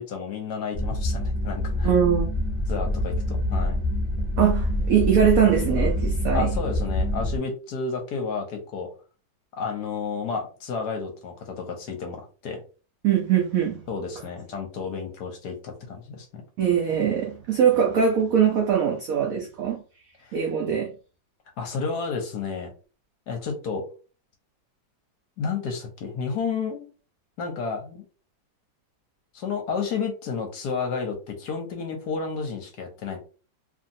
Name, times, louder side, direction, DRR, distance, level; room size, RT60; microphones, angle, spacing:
voice 1, 0.0-1.9 2.7-3.8 6.3-8.9 9.6-12.6 13.9-16.4 20.2-20.4 21.6-22.7 23.3-23.9 25.4-26.9 27.4-28.0 29.3-33.2, left 5 dB, 65° left, 1.1 m, -31 dB
sound 1, 0.7-7.4, left 1 dB, 30° left, 0.9 m, -26 dB
voice 2, 1.8-2.3 4.4-6.5 13.0-13.8 16.6-19.8 20.3-20.9, right 8 dB, 80° right, 0.7 m, -22 dB
2.9 x 2.7 x 2.6 m
omnidirectional pair, 2.1 m